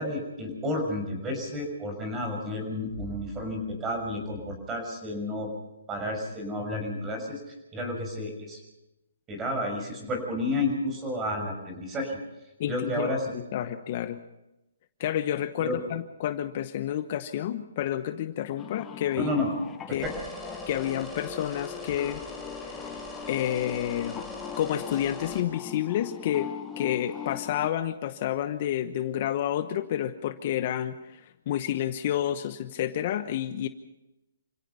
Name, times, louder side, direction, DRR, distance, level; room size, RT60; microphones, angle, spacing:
voice 1, 0.0-5.5 5.9-7.4 7.7-8.6 9.3-12.2 12.7-13.3 15.6-15.8 19.2-19.5 19.9-20.1, left 1 dB, 15° right, 4 dB, 6.1 m, -31 dB
voice 2, 12.6-14.2 15.0-19.3 19.9-20.1 20.7-22.2 22.6-24.2 24.6-31.2 31.5-33.7, left 11 dB, 40° left, 10 dB, 1.0 m, -30 dB
sound 1, 18.6-27.7, left 10 dB, 15° left, 0.9 m, -41 dB
sound 2, 19.9-25.4, left 1 dB, ahead, 4.4 m, -41 dB
28.0 x 17.0 x 5.6 m, 0.94 s
hypercardioid pair, 150°, 0 cm